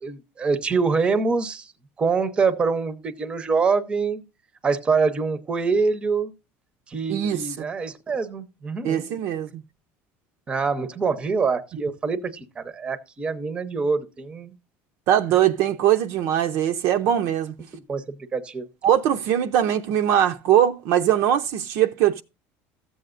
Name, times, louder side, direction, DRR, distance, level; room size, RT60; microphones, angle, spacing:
voice 1, 0.0-1.7 2.0-4.2 4.6-6.3 6.9-9.1 10.5-14.5 17.7-18.7, right 4 dB, 15° right, 0.8 m, -25 dB
voice 2, 7.1-7.4 8.8-9.5 15.1-17.5 18.8-22.2, right 10 dB, 55° right, 0.7 m, -21 dB
14.0 x 7.8 x 2.5 m
cardioid pair, 165°, 6 cm